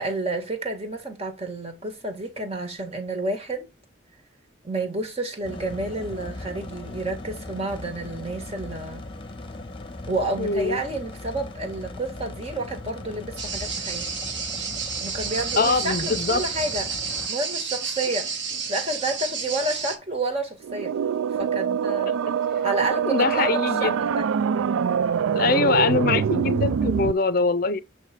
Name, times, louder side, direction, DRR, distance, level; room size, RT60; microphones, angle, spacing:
voice 1, 0.0-3.7 4.6-9.1 10.1-14.1 15.0-17.0 17.3-18.4 18.7-20.9 21.4-22.3 22.6-24.3, right 2 dB, 30° right, 1.6 m, -30 dB
sound 1, 5.4-17.3, left 2 dB, 25° left, 0.9 m, -39 dB
voice 2, 10.4-10.8 15.6-16.4 23.1-24.0 25.3-27.8, left 4 dB, 45° left, 0.6 m, -23 dB
sound 2, 13.4-20.0, right 5 dB, 65° right, 2.0 m, -30 dB
sound 3, 20.6-27.1, right 7 dB, 90° right, 0.3 m, -24 dB
8.2 x 3.2 x 4.7 m
head